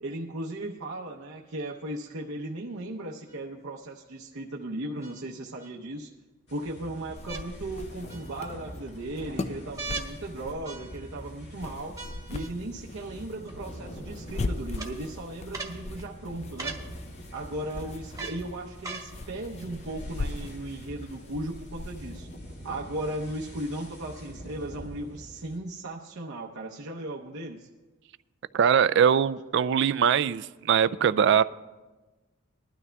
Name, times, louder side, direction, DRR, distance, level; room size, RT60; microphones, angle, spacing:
voice 1, 0.0-6.1 6.5-11.9 12.3-16.8 17.3-22.3 22.6-27.7, right 1 dB, 80° right, -2 dB, 0.8 m, -37 dB
sound 1, 3.3-3.4 5.0-5.7 7.2-7.5 8.1-8.6 9.7-10.1 10.6-11.2 12.0-12.5 13.5-13.6 14.8-14.9 15.5-15.8 16.6-16.8 18.2-18.4 18.8-19.1 19.9-20.0, right 4 dB, 15° right, 1.1 m, -39 dB
sound 2, 6.5-25.6, equal, 55° left, 2.1 m, -45 dB
sound 3, 7.2-22.4, left 2 dB, 30° left, 0.4 m, -40 dB
voice 2, 28.5-31.4, right 8 dB, 55° right, 16 dB, 0.3 m, -22 dB
20.5 x 12.5 x 2.3 m, 1.2 s
head